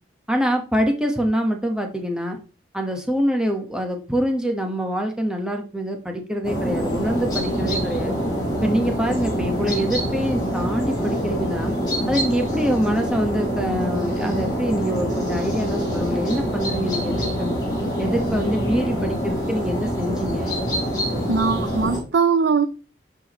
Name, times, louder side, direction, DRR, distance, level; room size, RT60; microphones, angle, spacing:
voice 1, 0.3-2.4 2.7-8.2 8.6-11.8 12.1-17.6 18.0-20.5, equal, 5° right, 1.2 m, -25 dB
sound 1, 6.4-22.0, equal, 20° left, 3.9 m, -25 dB
voice 2, 21.3-22.7, right 5 dB, 75° right, 0.5 m, -20 dB
11.5 x 4.7 x 3.0 m
head